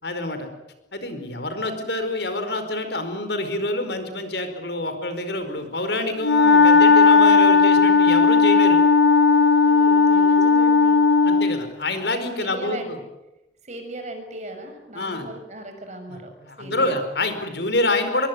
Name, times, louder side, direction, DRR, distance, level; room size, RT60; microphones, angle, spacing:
voice 1, 0.0-0.5 0.9-8.8 11.2-13.0 14.9-15.3 16.1-18.3, left 2 dB, 70° left, 9 dB, 4.8 m, -27 dB
Wind instrument woodwind instrument, 6.2-11.6, left 4 dB, 90° left, 1.9 m, -15 dB
voice 2, 9.6-11.5 12.4-13.0 13.6-16.3 16.6-16.9, right 1 dB, 40° right, 5 dB, 6.7 m, -37 dB
24.5 x 23.0 x 9.6 m, 0.97 s
head